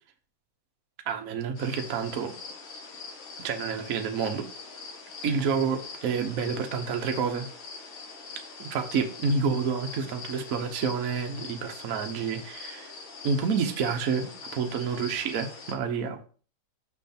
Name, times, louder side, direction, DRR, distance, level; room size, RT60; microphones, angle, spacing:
voice 1, 1.1-2.3 3.4-4.5 5.2-7.5 8.6-12.9 13.2-16.3, right 5 dB, 50° right, 5 dB, 1.2 m, -29 dB
sound 1, 1.6-15.7, left 4 dB, 75° left, 2.2 m, -43 dB
6.4 x 6.1 x 4.3 m, 0.41 s
omnidirectional pair, 2.3 m